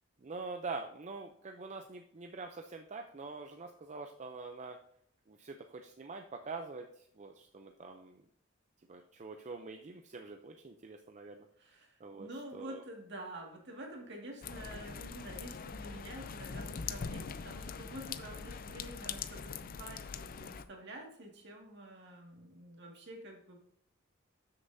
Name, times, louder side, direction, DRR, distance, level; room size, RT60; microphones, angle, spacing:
voice 1, 0.2-4.8 5.3-8.2 8.9-11.5 12.0-12.8, right 3 dB, 35° right, 4 dB, 0.5 m, -45 dB
voice 2, 11.6-23.6, right 1 dB, 60° right, 0 dB, 2.0 m, -48 dB
sound 1, 14.4-20.6, left 6 dB, 45° left, 0.4 m, -42 dB
12.5 x 6.7 x 2.7 m, 0.67 s
head